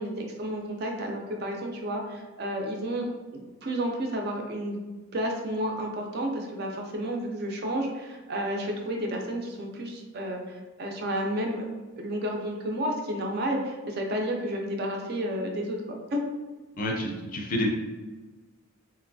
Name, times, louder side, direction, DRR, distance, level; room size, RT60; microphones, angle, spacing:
voice 1, 0.0-4.8 5.1-11.7 12.0-16.2, equal, 45° right, 2 dB, 0.4 m, -31 dB
voice 2, 16.8-17.7, left 1 dB, 40° left, 1 dB, 0.4 m, -28 dB
3.0 x 2.5 x 2.6 m, 1.3 s
head